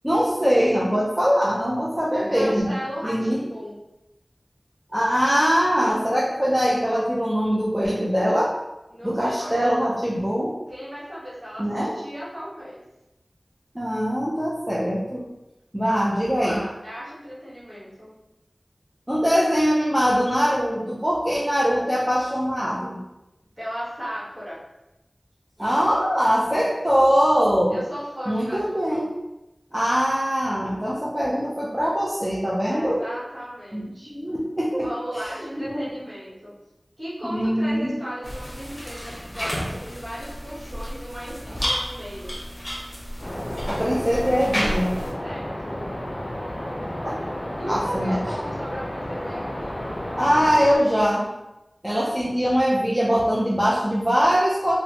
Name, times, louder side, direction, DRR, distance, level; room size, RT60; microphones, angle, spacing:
voice 1, 0.0-2.8 3.0-3.4 4.9-8.5 9.0-10.5 11.6-12.0 13.7-15.2 15.7-16.6 19.1-23.0 25.6-27.8 28.3-29.1 29.7-33.0 33.7-34.9 35.6-35.9 37.3-37.9 43.7-45.0 47.0-47.2 47.7-48.2 50.2-51.2 51.8-54.7, equal, 15° right, -6 dB, 0.5 m, -22 dB
voice 2, 2.3-3.8 8.9-9.5 10.7-12.8 15.8-18.1 23.6-24.6 27.7-29.1 32.7-34.1 34.8-36.5 37.0-42.4 45.2-45.8 47.5-50.0, equal, 45° right, -8 dB, 1.2 m, -36 dB
sound 1, 38.2-45.1, equal, 30° left, 0.8 m, -31 dB
sound 2, 43.2-50.8, left 1 dB, 45° left, 0.5 m, -32 dB
2.8 x 2.1 x 2.7 m, 0.94 s
wide cardioid pair, 45°, 0 cm